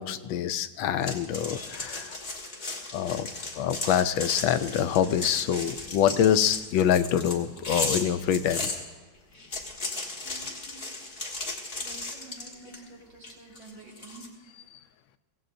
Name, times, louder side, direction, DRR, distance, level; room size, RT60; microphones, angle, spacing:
voice 1, 0.0-2.2 2.9-3.3 3.6-8.7, left 9 dB, 90° left, 11 dB, 1.4 m, -25 dB
sound 1, 1.0-8.8 9.3-12.9 13.2-14.3, left 2 dB, 30° left, 1.6 m, -35 dB
voice 2, 10.2-10.9 11.8-14.2, right 3 dB, 90° right, -3 dB, 4.6 m, -49 dB
23.0 x 17.0 x 2.6 m, 1.3 s
omnidirectional pair, 2.1 m